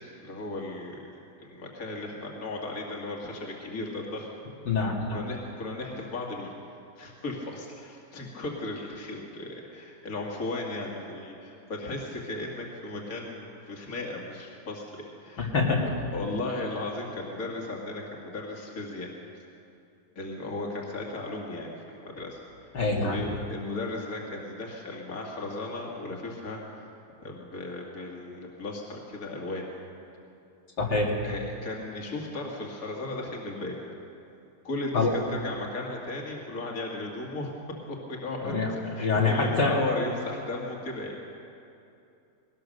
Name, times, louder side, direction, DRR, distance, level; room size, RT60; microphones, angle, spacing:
voice 1, 0.2-1.0 1.4-4.3 5.1-6.5 7.0-15.5 15.8-19.1 20.2-22.7 23.0-26.6 27.2-29.7 31.2-33.8 34.6-37.5 37.9-41.2, left 2 dB, 55° left, -1 dB, 2.6 m, -36 dB
voice 2, 4.7-5.2 15.4-15.8 22.7-23.2 30.8-31.1 34.9-35.1 38.5-38.7 39.0-39.8, left 3 dB, 80° left, -2 dB, 3.2 m, -25 dB
21.5 x 18.5 x 6.6 m, 2.6 s
omnidirectional pair, 1.9 m